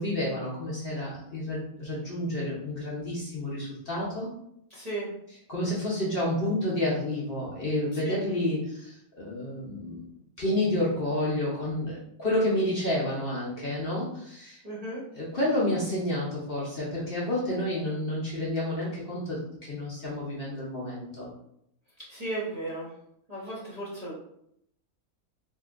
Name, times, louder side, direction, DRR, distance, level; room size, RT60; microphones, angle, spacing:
voice 1, 0.0-4.3 5.5-10.1 10.4-14.6 15.1-21.3, left 1 dB, 50° left, -6 dB, 0.8 m, -30 dB
voice 2, 4.7-5.1 8.0-8.2 14.6-15.0 22.1-22.9 23.3-24.1, right 2 dB, 35° right, -8 dB, 0.8 m, -35 dB
3.6 x 2.6 x 2.4 m, 0.73 s
omnidirectional pair, 1.5 m